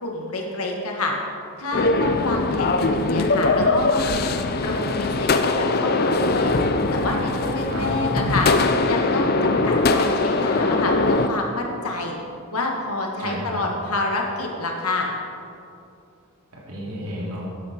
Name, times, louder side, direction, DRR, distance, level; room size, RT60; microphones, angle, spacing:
voice 1, 0.0-1.1 1.6-4.3 4.6-6.5 6.9-8.5 8.9-12.1 12.5-15.1, left 2 dB, 85° left, 0 dB, 1.8 m, -28 dB
sound 1, 1.7-11.3, left 3 dB, 45° left, 0.5 m, -21 dB
voice 2, 7.7-8.4 13.2-13.6 16.5-17.5, equal, 85° right, -3 dB, 2.7 m, -32 dB
12.0 x 9.4 x 4.4 m, 2.6 s
head